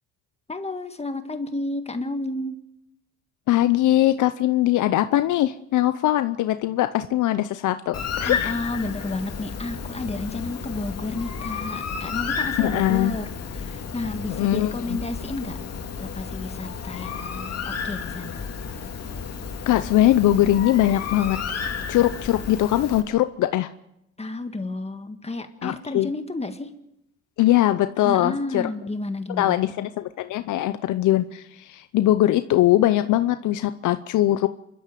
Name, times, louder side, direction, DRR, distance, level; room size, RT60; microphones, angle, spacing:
voice 1, 0.5-2.6 8.3-15.6 16.0-18.4 24.2-26.7 28.0-29.6, left 2 dB, 20° left, 7 dB, 1.8 m, -31 dB
voice 2, 3.5-8.5 12.6-13.2 14.3-15.0 19.7-23.7 25.6-26.1 27.4-28.6 29.4-34.5, left 14 dB, 80° left, 11 dB, 0.7 m, -21 dB
Bird, 7.9-23.0, left 6 dB, 55° left, 2.8 m, -32 dB
27.5 x 12.5 x 7.7 m, 0.83 s
cardioid pair, 90°, 30 cm